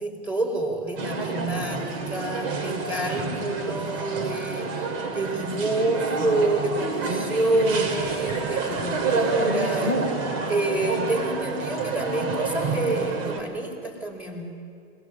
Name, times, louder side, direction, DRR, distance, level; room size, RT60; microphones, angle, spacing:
voice 1, 0.0-10.1 10.5-14.5, right 2 dB, 5° right, 0 dB, 4.0 m, -28 dB
sound 1, 1.0-13.4, right 3 dB, 55° right, 4.1 m, -28 dB
23.0 x 18.5 x 7.3 m, 2.3 s
hypercardioid pair, 115°, 33 cm